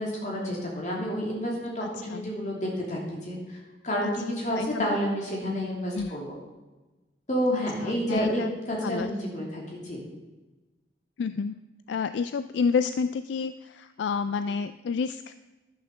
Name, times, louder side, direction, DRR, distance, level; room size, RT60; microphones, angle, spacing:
voice 1, 0.0-6.3 7.3-10.0, equal, 40° left, -3 dB, 3.0 m, -30 dB
voice 2, 1.8-2.3 4.0-4.1 4.5-4.8 5.9-6.1 7.5-8.5 8.8-9.1 11.2-11.6 11.9-15.3, left 5 dB, 70° left, 11 dB, 0.3 m, -30 dB
11.0 x 6.6 x 6.6 m, 1.2 s
head